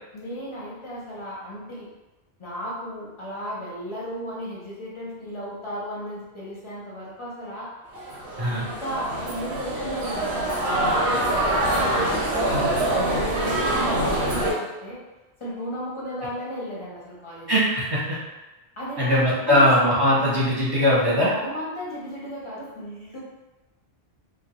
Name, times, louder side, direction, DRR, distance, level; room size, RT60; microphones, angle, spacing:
voice 1, 0.1-1.9 2.4-7.7 8.5-15.0 15.4-17.5 18.8-19.7 20.1-20.5 21.2-23.2, equal, 35° left, -6 dB, 0.6 m, -35 dB
sound 1, 7.9-14.5, right 1 dB, 90° right, 0.9 m, -24 dB
voice 2, 17.5-18.2 19.0-21.3, equal, 30° right, -7 dB, 0.5 m, -20 dB
2.2 x 2.1 x 2.8 m, 1.1 s
omnidirectional pair, 1.1 m